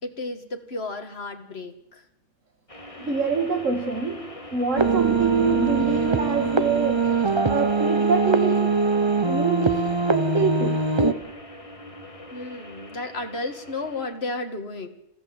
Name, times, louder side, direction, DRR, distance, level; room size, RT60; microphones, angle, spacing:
voice 1, 0.0-2.0 12.3-14.9, left 2 dB, 55° left, 6 dB, 2.2 m, -33 dB
sound 1, 2.7-14.1, left 1 dB, 25° left, 1.9 m, -40 dB
voice 2, 3.0-4.2 4.5-7.1 7.5-8.6 9.2-10.8, right 4 dB, 85° right, 5 dB, 2.6 m, -25 dB
sound 2, 4.8-11.1, right 4 dB, 25° right, 0.9 m, -22 dB
28.0 x 14.5 x 8.0 m, 0.85 s
omnidirectional pair, 1.3 m